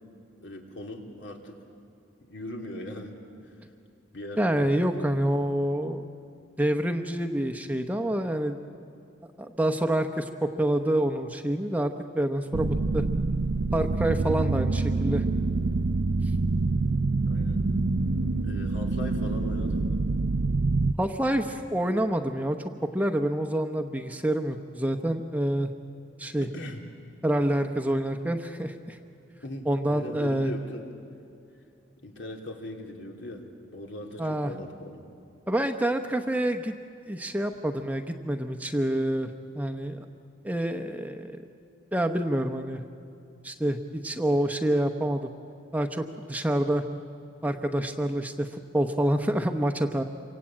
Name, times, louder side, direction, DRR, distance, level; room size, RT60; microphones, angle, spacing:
voice 1, 0.4-1.6 2.2-3.2 3.4-3.5 4.1-5.1 17.2-17.6 18.2-20.0 21.2-21.5 26.5-26.8 29.4-30.9 32.0-33.4 33.7-35.0, left 1 dB, 70° left, 2 dB, 3.1 m, -40 dB
voice 2, 4.4-6.0 6.6-8.6 9.4-13.1 13.7-15.2 21.0-25.7 26.2-26.5 27.2-29.0 29.7-30.5 34.2-34.5 35.5-36.7 37.1-40.0 40.4-41.4 41.9-42.8 43.4-45.3 45.7-46.8 47.4-50.0, right 1 dB, 10° right, 6 dB, 0.8 m, -27 dB
sound 1, 12.5-20.9, right 3 dB, 65° right, 0.6 m, -26 dB
27.5 x 24.0 x 8.8 m, 2.5 s
head